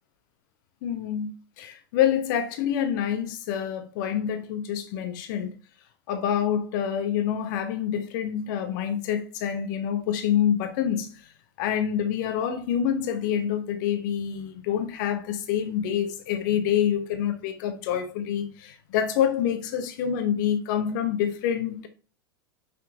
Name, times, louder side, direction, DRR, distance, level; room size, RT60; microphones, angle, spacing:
voice 1, 0.8-1.3 1.6-5.5 6.1-11.3 11.6-21.9, left 9 dB, 55° left, 1.0 m, -27 dB
6.2 x 4.4 x 3.6 m
figure-of-eight pair, 90°, 12 cm